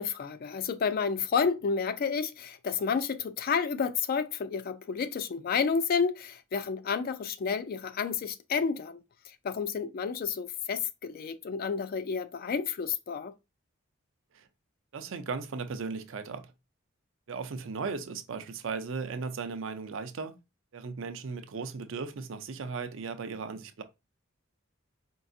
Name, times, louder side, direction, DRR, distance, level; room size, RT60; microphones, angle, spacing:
voice 1, 0.0-9.0 9.4-13.3, left 6 dB, 45° left, 0.3 m, -30 dB
voice 2, 14.9-16.5 17.3-20.4 20.7-23.8, right 4 dB, 70° right, 0.5 m, -36 dB
4.5 x 2.4 x 2.6 m
head